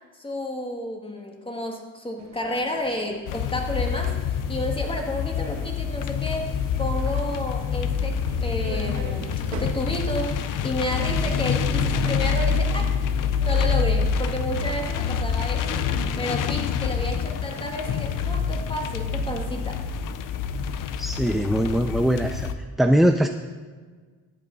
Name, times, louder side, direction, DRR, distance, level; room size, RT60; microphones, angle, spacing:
voice 1, 0.1-4.1 4.5-6.5 6.8-12.9 13.4-15.9 16.2-19.8, left 1 dB, 15° left, 2 dB, 1.8 m, -31 dB
sound 1, 2.2-10.3, right 5 dB, 60° right, 1.5 m, -41 dB
sound 2, 3.3-22.5, left 6 dB, 80° left, 0.7 m, -26 dB
voice 2, 21.0-22.5 22.8-23.3, equal, ahead, 6 dB, 0.4 m, -21 dB
13.5 x 8.7 x 4.0 m, 1.5 s
cardioid pair, 95°, 32 cm